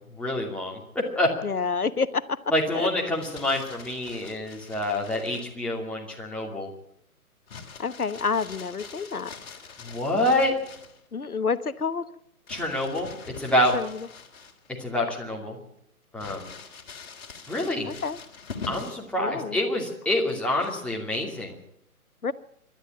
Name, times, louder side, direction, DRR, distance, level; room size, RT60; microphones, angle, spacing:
voice 1, 0.2-1.3 2.5-6.7 9.8-10.5 12.5-13.7 14.8-15.6 16.1-16.5 17.5-17.9 18.7-21.5, left 1 dB, ahead, -3 dB, 2.6 m, -27 dB
voice 2, 1.4-2.4 2.7-2.9 7.8-9.3 11.1-12.1 13.7-14.1 17.9-18.2 19.2-19.6 22.2-22.3, left 5 dB, 75° left, 15 dB, 1.2 m, -28 dB
Crumpling crinkling, 3.0-5.5 7.5-11.0 12.5-14.8 15.2-15.3 16.2-19.1 20.5-21.0, left 5 dB, 40° left, 3.4 m, -44 dB
26.0 x 12.0 x 9.0 m, 0.74 s
figure-of-eight pair, 135°, 44 cm